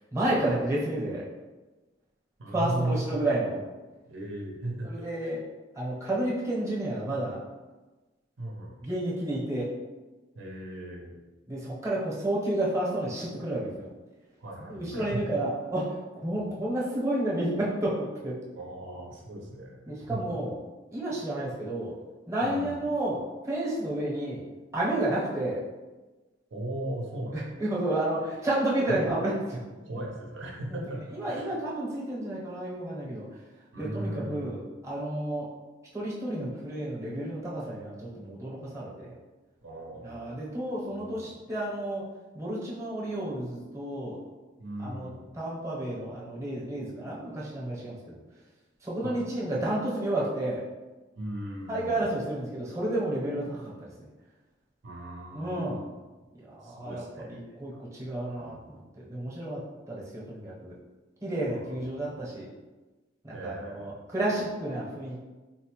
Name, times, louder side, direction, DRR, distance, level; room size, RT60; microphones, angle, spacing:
voice 1, 0.1-1.2 2.5-3.6 4.8-5.4 5.7-7.4 8.8-9.7 11.5-13.9 14.7-18.4 19.9-20.6 20.9-21.9 22.3-24.4 24.7-25.6 27.3-29.6 31.1-33.3 33.8-35.5 35.9-39.1 40.0-42.0 42.3-44.2 44.8-45.1 45.3-48.2 48.8-50.6 51.7-53.9 55.3-55.8 56.4-59.6 59.9-60.7 61.2-62.5 63.2-65.2, right 1 dB, 15° right, -6 dB, 0.8 m, -31 dB
voice 2, 2.4-3.0 3.4-3.6 4.0-5.3 8.4-8.8 10.3-11.2 14.4-15.2 16.3-16.4 18.6-20.2 22.4-22.8 26.5-27.4 28.9-29.0 29.8-31.5 33.7-34.6 39.6-40.5 40.9-41.3 44.6-45.3 49.0-49.2 51.2-52.0 54.8-55.9 56.6-58.7 61.4-62.2 63.3-63.9 64.3-64.4, right 1 dB, 75° right, -1 dB, 0.6 m, -38 dB
3.9 x 2.1 x 2.9 m, 1.2 s
head